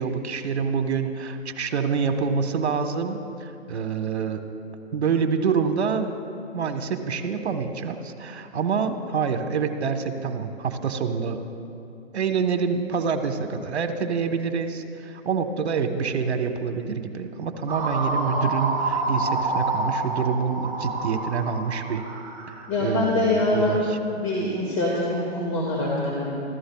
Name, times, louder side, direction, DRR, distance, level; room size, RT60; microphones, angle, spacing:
voice 1, 0.0-4.4 4.9-6.1 6.5-11.4 12.1-22.0 22.6-23.8, right 5 dB, 75° right, 7 dB, 1.3 m, -26 dB
sound 1, 17.7-22.7, right 3 dB, 10° right, 1.3 m, -28 dB
voice 2, 22.7-23.9 24.1-26.3, left 2 dB, 30° left, -4 dB, 2.1 m, -24 dB
27.0 x 14.0 x 2.3 m, 2.5 s
hypercardioid pair, 160°, 33 cm